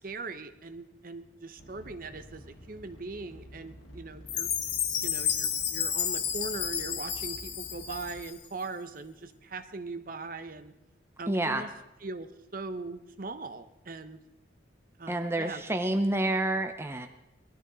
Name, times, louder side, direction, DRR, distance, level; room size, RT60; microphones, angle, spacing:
voice 1, 0.0-4.5 5.0-10.7 11.2-11.7 12.0-14.2 15.0-15.6, right 3 dB, 45° right, 10 dB, 0.8 m, -40 dB
sound 1, 1.6-8.4, equal, 85° left, 2.1 m, -50 dB
Chime, 4.3-8.5, left 8 dB, 60° left, 1.6 m, -31 dB
voice 2, 11.3-11.6 15.1-17.1, right 1 dB, 15° right, 7 dB, 0.6 m, -28 dB
20.0 x 13.0 x 4.0 m, 0.93 s
head